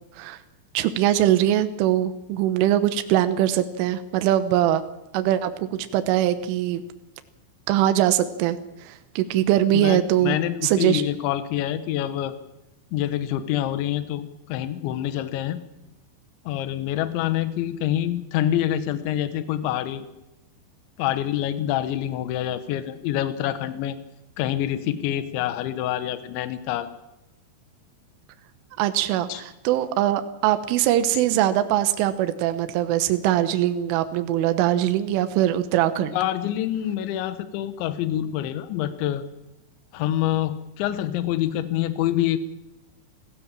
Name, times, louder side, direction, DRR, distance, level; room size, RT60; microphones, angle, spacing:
voice 1, 0.8-4.8 5.1-6.8 7.7-10.4 10.6-11.0 28.8-36.2, right 12 dB, 80° right, 10 dB, 3.5 m, -22 dB
voice 2, 9.7-12.3 12.9-15.6 16.5-20.1 21.0-24.0 24.4-26.9 29.3-29.4 36.1-39.2 39.9-42.4, left 12 dB, 75° left, 11 dB, 3.4 m, -26 dB
27.0 x 16.0 x 7.4 m, 0.94 s
omnidirectional pair, 5.7 m